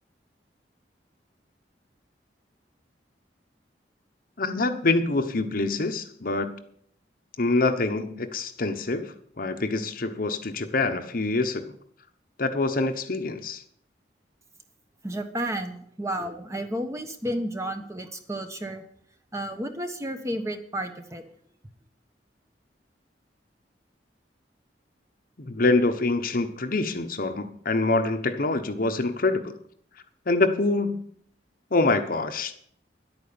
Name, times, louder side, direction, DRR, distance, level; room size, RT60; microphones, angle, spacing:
voice 1, 4.4-6.5 7.4-11.7 12.4-13.6 25.4-29.5 30.3-31.0 31.7-32.5, left 3 dB, 55° left, 8 dB, 1.0 m, -25 dB
voice 2, 15.0-18.9 19.3-21.2, right 1 dB, 15° right, 6 dB, 1.2 m, -32 dB
11.0 x 8.7 x 7.0 m, 0.64 s
head